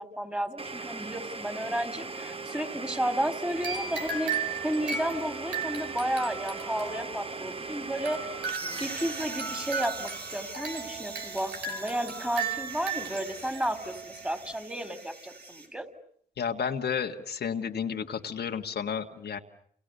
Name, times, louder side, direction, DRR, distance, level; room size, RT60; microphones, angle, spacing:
voice 1, 0.0-8.5 8.8-15.9, right 1 dB, 10° right, 10 dB, 3.4 m, -32 dB
Domestic sounds home sounds, 0.6-12.2, right 3 dB, 35° right, 1.3 m, -40 dB
sound 1, 3.5-14.6, right 5 dB, 90° right, 3.1 m, -36 dB
sound 2, 8.4-15.7, right 3 dB, 70° right, 5.8 m, -42 dB
voice 2, 16.4-19.4, left 7 dB, 75° left, 4 dB, 1.7 m, -32 dB
29.0 x 29.0 x 6.8 m, 0.65 s
cardioid pair, 60°, 17 cm